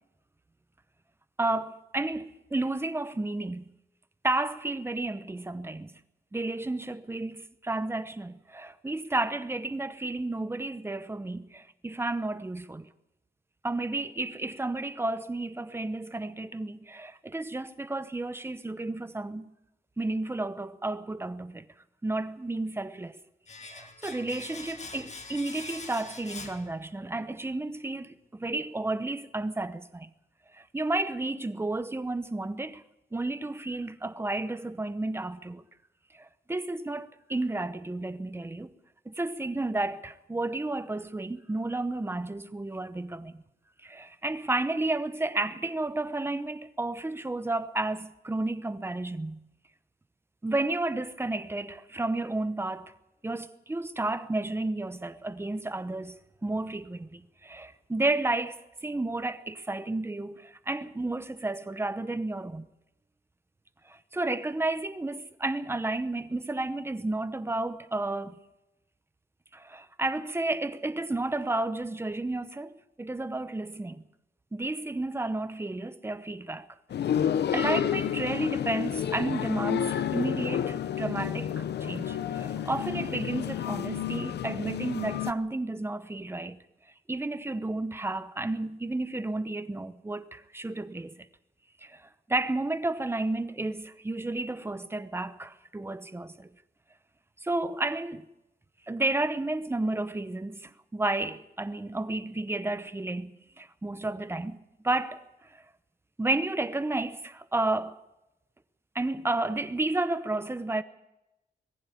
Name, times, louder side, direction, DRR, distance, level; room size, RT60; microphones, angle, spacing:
voice 1, 1.4-3.7 4.2-5.9 6.3-12.9 13.6-19.5 20.0-21.7 22.0-23.2 23.6-30.1 30.5-32.8 33.1-35.6 36.1-38.7 39.1-43.4 43.8-49.4 50.4-52.9 53.2-62.6 63.9-68.4 69.5-74.0 74.5-76.7 77.2-77.3 77.5-86.6 87.1-91.3 91.8-96.5 97.4-98.3 98.9-103.3 103.6-105.6 106.2-108.0 108.9-110.8, right 2 dB, 15° right, 0.9 m, -32 dB
Domestic sounds home sounds, 23.5-27.3 27.5-27.7, left 3 dB, 40° left, 1.9 m, -44 dB
sound 1, 76.9-85.3, left 9 dB, 85° left, 0.8 m, -30 dB
21.5 x 15.0 x 8.5 m
wide cardioid pair, 135°, 17 cm